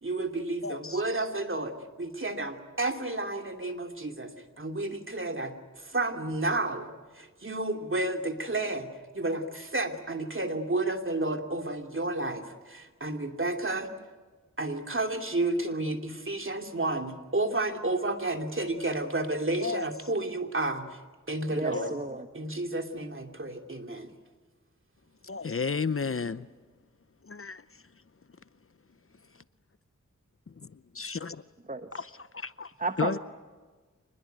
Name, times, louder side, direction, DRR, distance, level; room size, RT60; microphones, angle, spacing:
voice 1, 0.0-4.3 4.6-6.9 7.1-13.9 14.6-21.0 21.3-21.9 22.3-24.1, right 2 dB, 40° right, 5 dB, 2.8 m, -31 dB
voice 2, 0.6-1.0 19.6-19.9 21.7-21.9 25.2-26.5 27.3-27.6 29.3-29.4 30.5-31.4 31.9-33.2, left 5 dB, 45° left, 15 dB, 0.7 m, -33 dB
voice 3, 21.5-22.3 31.7-31.9 32.8-33.2, right 3 dB, 25° right, 8 dB, 1.3 m, -32 dB
25.5 x 21.0 x 9.3 m, 1.4 s
wide cardioid pair, 55°, 30 cm